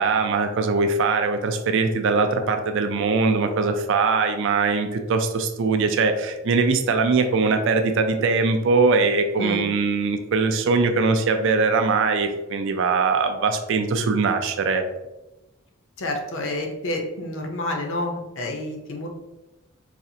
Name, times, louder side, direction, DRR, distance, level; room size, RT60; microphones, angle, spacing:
voice 1, 0.0-14.8, right 4 dB, 60° right, 7 dB, 0.4 m, -21 dB
voice 2, 16.0-19.1, left 1 dB, 60° left, 2 dB, 0.6 m, -29 dB
4.1 x 2.4 x 2.7 m, 1.0 s
head